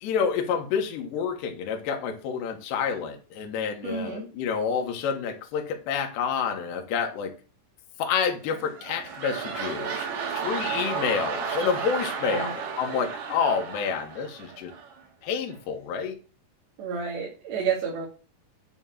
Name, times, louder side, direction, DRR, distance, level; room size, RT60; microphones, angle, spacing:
voice 1, 0.0-7.3 8.0-10.1 10.3-14.7 15.2-16.2, left 6 dB, 80° left, 3 dB, 3.6 m, -28 dB
voice 2, 3.8-4.3 12.2-12.5 16.8-18.1, right 6 dB, 80° right, -4 dB, 4.7 m, -30 dB
sound 1, 8.5-15.0 15.5-15.6, right 6 dB, 55° right, 3.3 m, -33 dB
10.5 x 4.5 x 7.4 m, 0.35 s
omnidirectional pair, 4.9 m